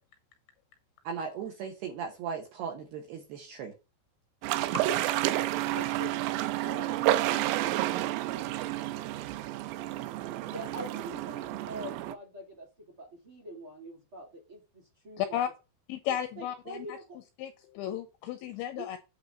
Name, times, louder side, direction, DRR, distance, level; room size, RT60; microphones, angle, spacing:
voice 1, 1.0-3.7, right 6 dB, 70° right, 2.6 m, -37 dB
sound 1, 4.4-12.1, right 15 dB, 85° right, 3.2 m, -30 dB
voice 2, 5.7-6.2 6.6-7.3 10.4-12.7 13.0-15.4 16.4-17.2 18.8-18.9, equal, 35° right, 2.3 m, -43 dB
voice 3, 15.2-15.5 15.9-17.0 17.4-19.0, left 11 dB, 85° left, 2.7 m, -34 dB
9.2 x 4.0 x 5.5 m
omnidirectional pair, 5.9 m